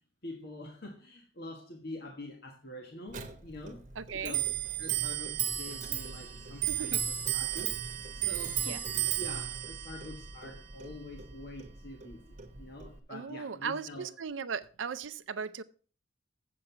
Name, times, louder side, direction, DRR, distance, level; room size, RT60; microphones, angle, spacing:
voice 1, 0.2-3.8 4.1-4.5 4.8-14.1, left 1 dB, 55° left, 1.4 m, -46 dB
Clock, 3.1-13.0, right 11 dB, 40° right, 1.1 m, -35 dB
voice 2, 4.0-4.4 6.7-7.0 8.6-8.8 13.1-15.6, right 6 dB, 90° right, 0.5 m, -37 dB
7.6 x 7.6 x 5.7 m
head